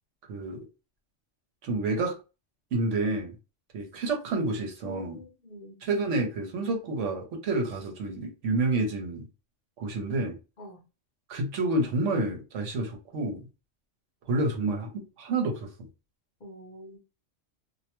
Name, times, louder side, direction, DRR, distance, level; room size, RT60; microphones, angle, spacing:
voice 1, 0.3-0.6 1.6-2.2 2.7-3.4 3.7-5.2 5.8-9.3 9.8-10.4 11.3-13.5 14.3-15.9, right 2 dB, 75° right, 1.1 m, -29 dB
voice 2, 4.8-5.8 10.6-10.9 16.4-17.0, left 1 dB, 45° left, 0.7 m, -44 dB
2.6 x 2.1 x 2.9 m
omnidirectional pair, 1.3 m